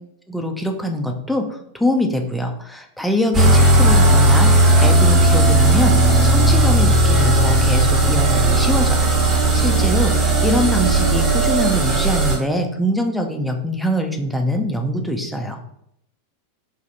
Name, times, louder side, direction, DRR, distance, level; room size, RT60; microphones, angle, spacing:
voice 1, 0.3-15.6, left 1 dB, ahead, 3 dB, 0.5 m, -23 dB
sound 1, 3.3-12.4, right 1 dB, 25° right, 0.9 m, -15 dB
4.6 x 2.4 x 2.6 m, 0.74 s
figure-of-eight pair, 90°, 0 cm